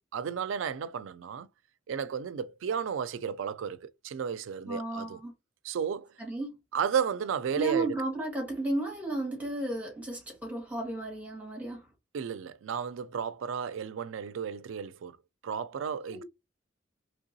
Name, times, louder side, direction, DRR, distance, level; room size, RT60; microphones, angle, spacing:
voice 1, 0.1-1.5 1.9-5.2 5.6-6.1 6.7-8.0 12.1-15.2 15.4-16.2, right 7 dB, 85° right, 0.4 m, -33 dB
voice 2, 4.7-5.3 6.2-6.5 7.6-11.8 16.1-16.2, right 2 dB, 10° right, 1.5 m, -33 dB
3.7 x 3.3 x 2.7 m
head